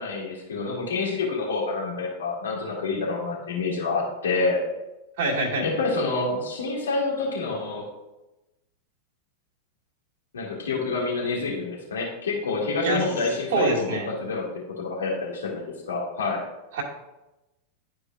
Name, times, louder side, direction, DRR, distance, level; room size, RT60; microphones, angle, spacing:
voice 1, 0.0-4.6 5.6-7.8 10.3-14.5 14.8-16.4, left 3 dB, 65° left, -3 dB, 2.1 m, -27 dB
voice 2, 5.2-5.7 12.8-13.0 13.5-14.1 16.7-16.8, right 2 dB, 50° right, 0 dB, 2.0 m, -24 dB
12.5 x 4.7 x 2.5 m, 0.98 s
figure-of-eight pair, 90°, 0 cm